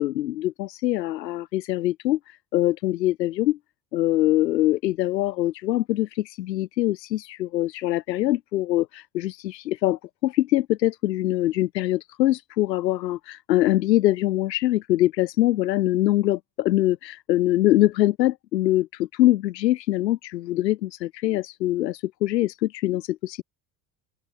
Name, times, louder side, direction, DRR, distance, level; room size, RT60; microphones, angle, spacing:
voice 1, 0.0-3.6 3.9-23.4, left 15 dB, 80° left, 2.4 m, -23 dB
hypercardioid pair, 65°, 49 cm